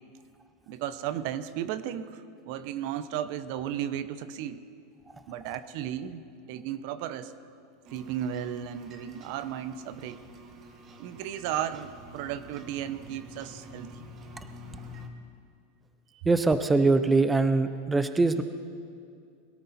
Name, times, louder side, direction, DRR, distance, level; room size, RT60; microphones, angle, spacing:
voice 1, 0.7-4.6 5.3-6.2 6.5-7.3 7.9-10.2 11.0-14.0, right 10 dB, 55° right, 13 dB, 0.7 m, -34 dB
sound 1, 7.8-15.1, equal, 30° right, 1.3 m, -48 dB
voice 2, 16.2-18.4, right 3 dB, 10° right, 10 dB, 0.5 m, -23 dB
21.5 x 13.0 x 4.2 m, 2.4 s
supercardioid pair, 145°, 0 cm